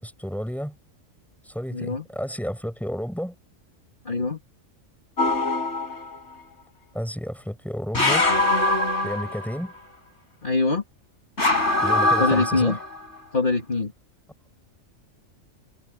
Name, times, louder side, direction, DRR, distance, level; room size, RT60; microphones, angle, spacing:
voice 1, 0.0-0.8 1.4-3.3 6.9-8.3 9.0-9.7 11.8-12.8, equal, ahead, 7.2 m, -31 dB
voice 2, 1.7-2.1 4.0-4.4 10.4-10.8 12.2-12.8 13.3-13.9, left 3 dB, 40° left, 2.6 m, -23 dB
sound 1, 5.2-6.2 7.9-9.7 11.4-13.1, left 2 dB, 60° left, 5.5 m, -23 dB
omnidirectional pair, 1.4 m